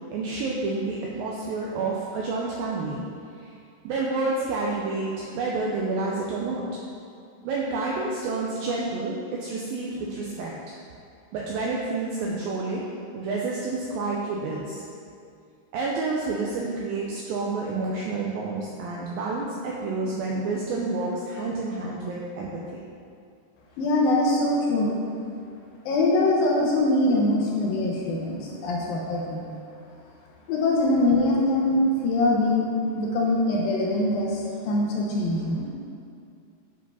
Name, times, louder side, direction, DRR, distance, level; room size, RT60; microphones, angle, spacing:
voice 1, 0.1-3.1 3.3-3.6 3.8-6.6 7.4-10.5 11.3-12.9 13.1-14.8 15.7-22.8, right 3 dB, 80° right, -3 dB, 2.2 m, -29 dB
voice 2, 23.8-25.0 25.9-29.5 30.5-32.7 32.9-35.6, left 2 dB, 75° left, -2 dB, 2.4 m, -23 dB
8.2 x 5.0 x 5.5 m, 2.4 s
omnidirectional pair, 4.7 m